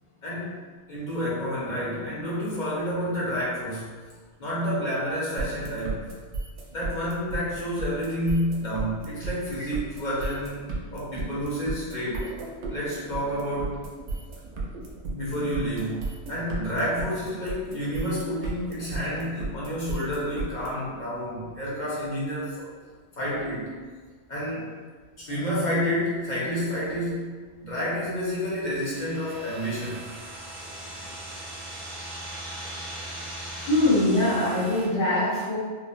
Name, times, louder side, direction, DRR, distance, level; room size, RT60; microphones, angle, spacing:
voice 1, 0.2-0.5 0.9-3.9 4.4-6.0 6.7-10.6 10.9-12.4 12.7-13.8 14.6-14.7 15.1-22.7 23.2-23.7 24.3-24.6 25.2-27.3 27.6-30.0, equal, 50° left, -7 dB, 0.8 m, -29 dB
sound 1, 5.4-20.7, right 3 dB, 85° right, 0.9 m, -34 dB
sound 2, 28.7-34.9, right 1 dB, 50° right, 0.8 m, -39 dB
voice 2, 33.5-35.6, left 1 dB, 80° left, -11 dB, 1.2 m, -23 dB
3.0 x 2.0 x 2.5 m, 1.5 s
omnidirectional pair, 1.1 m